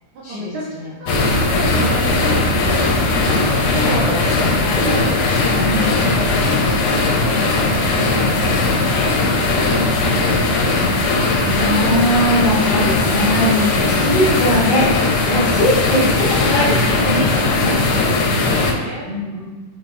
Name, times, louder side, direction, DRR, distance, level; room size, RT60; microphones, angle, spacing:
voice 1, 0.1-4.1 4.7-5.2 5.7-6.4 6.7-11.1 17.8-19.1, right 2 dB, 85° right, -7 dB, 1.1 m, -31 dB
sound 1, 1.1-18.7, left 3 dB, 75° left, 2.0 m, -18 dB
voice 2, 3.8-4.1 4.4-5.0 5.6-6.2 11.4-14.9 15.3-17.7 19.0-19.5, equal, 50° left, -8 dB, 1.4 m, -21 dB
5.7 x 2.7 x 3.2 m, 1.3 s
omnidirectional pair, 3.7 m